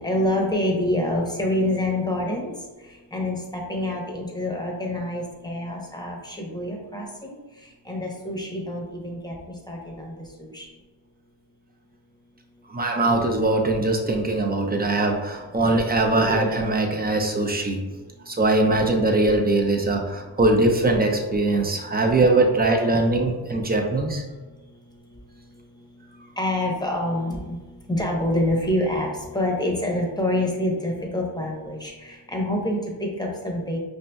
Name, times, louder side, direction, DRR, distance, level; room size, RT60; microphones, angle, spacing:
voice 1, 0.0-2.5 3.1-7.3 7.9-9.3 9.7-10.1 10.4-10.7 26.4-27.6 27.9-33.8, left 1 dB, 10° left, -1 dB, 0.9 m, -26 dB
voice 2, 12.7-17.8 18.3-24.2, right 2 dB, 20° right, 2 dB, 0.6 m, -21 dB
5.2 x 2.7 x 2.2 m, 1.2 s
cardioid pair, 55°, 46 cm